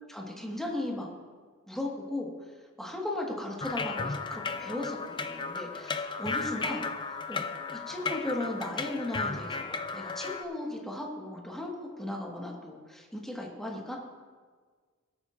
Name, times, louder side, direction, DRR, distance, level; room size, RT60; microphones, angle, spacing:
voice 1, 0.1-1.1 1.7-2.5 2.8-11.7 12.0-14.0, left 1 dB, ahead, -2 dB, 1.5 m, -36 dB
sound 1, 3.6-10.4, left 4 dB, 20° left, 0.4 m, -35 dB
18.5 x 8.6 x 2.5 m, 1.5 s
head